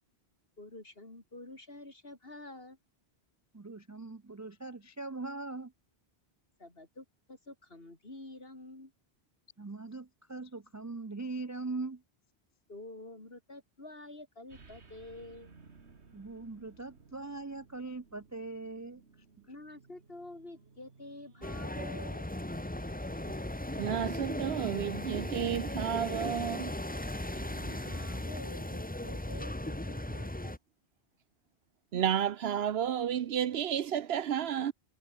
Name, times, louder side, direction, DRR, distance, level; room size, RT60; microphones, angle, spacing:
voice 1, 0.6-2.8 6.6-8.9 12.7-15.6 19.5-22.3 27.3-30.6, left 2 dB, 60° left, 4.7 m, -48 dB
voice 2, 3.5-5.7 9.6-12.0 16.1-19.0, right 3 dB, 25° right, 0.4 m, -41 dB
sound 1, 14.5-28.8, right 4 dB, 85° right, 2.3 m, -60 dB
sound 2, 21.4-30.6, left 1 dB, 10° left, 1.1 m, -37 dB
voice 3, 23.8-26.7 31.9-34.7, right 9 dB, 70° right, 0.9 m, -31 dB
omnidirectional pair, 1.1 m